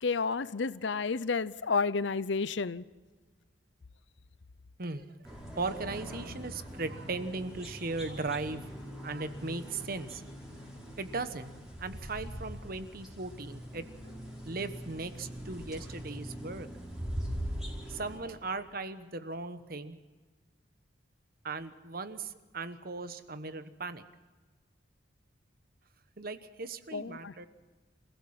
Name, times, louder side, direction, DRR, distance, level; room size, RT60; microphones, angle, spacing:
voice 1, 0.0-2.8 26.9-27.3, left 4 dB, 75° left, 0.7 m, -31 dB
voice 2, 4.8-5.1 5.6-8.6 9.0-10.2 11.0-11.5 11.8-14.1 14.4-16.7 17.9-20.0 21.4-24.0 26.2-27.5, right 3 dB, 50° right, 1.2 m, -38 dB
sound 1, 5.2-18.2, equal, 5° right, 5.5 m, -42 dB
28.5 x 16.0 x 5.9 m
head